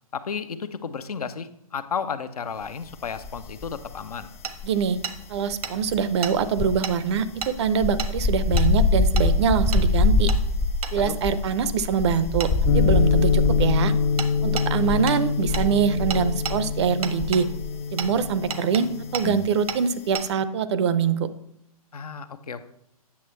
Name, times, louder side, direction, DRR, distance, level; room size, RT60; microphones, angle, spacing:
voice 1, 0.1-4.3 11.0-11.2 21.9-22.7, left 6 dB, 80° left, 11 dB, 0.7 m, -33 dB
sound 1, 3.2-4.0 4.2-17.8 18.0-18.3, left 3 dB, 15° left, 0.3 m, -25 dB
Hammer, 4.4-4.5 5.0-5.2 5.6-5.7 6.2-6.3 6.8-7.0 7.4-7.5 8.0-8.1 8.6-8.7 9.2-9.3 9.7-9.8 10.3-10.4 10.8-10.9 12.4-12.5 14.2-14.3 14.6-14.7 15.1-15.2 15.5-15.7 16.1-16.6 17.0-17.4 18.0-18.1 18.5-18.8 19.1-19.3 19.7-19.8 20.1-20.3, right 6 dB, 75° right, 0.9 m, -31 dB
voice 2, 4.6-5.0 5.3-10.3 10.9-13.9 14.4-17.5 17.9-21.3, right 6 dB, 45° right, 14 dB, 0.5 m, -24 dB
sound 2, 12.7-19.5, left 6 dB, 45° left, 0.8 m, -25 dB
8.4 x 6.8 x 3.1 m, 0.79 s
hypercardioid pair, 130°, 19 cm